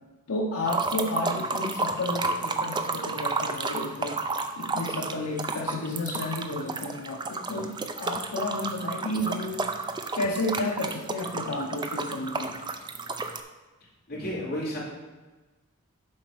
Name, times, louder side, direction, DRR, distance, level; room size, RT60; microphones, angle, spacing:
voice 1, 0.3-4.2 4.6-9.9 10.1-12.6, left 1 dB, 80° left, -1 dB, 0.8 m, -32 dB
sound 1, 0.6-13.4, right 3 dB, 20° right, 0.4 m, -31 dB
voice 2, 14.1-14.8, equal, 45° left, -6 dB, 2.8 m, -32 dB
7.3 x 4.2 x 6.2 m, 1.2 s
head